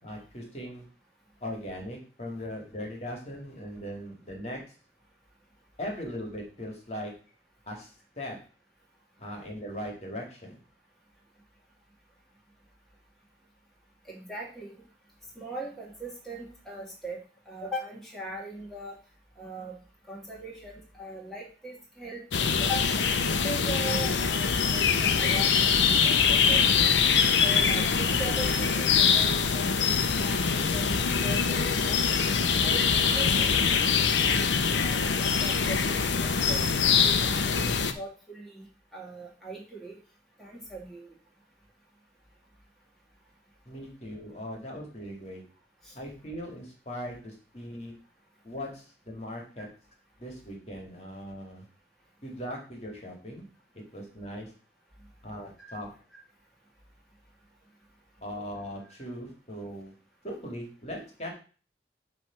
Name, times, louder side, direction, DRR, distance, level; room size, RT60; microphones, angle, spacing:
voice 1, 0.0-0.8 1.4-4.6 5.8-7.1 7.7-8.4 9.2-10.6 43.7-45.4 45.9-47.9 48.4-49.7 50.2-51.7 52.2-53.4 53.7-54.5 55.2-55.9 58.2-59.9 60.2-61.3, equal, 35° left, 0 dB, 2.1 m, -39 dB
voice 2, 14.1-14.8 15.4-17.2 17.5-18.9 19.4-19.7 20.1-27.0 27.4-29.8 30.2-30.8 31.1-32.2 32.6-36.6 37.0-38.7 38.9-40.0 40.4-41.1 45.8-45.9 55.7-55.8, right 1 dB, ahead, -4 dB, 2.0 m, -40 dB
sound 1, 22.3-37.9, left 6 dB, 80° left, 0.7 m, -24 dB
8.9 x 3.4 x 5.9 m, 0.38 s
head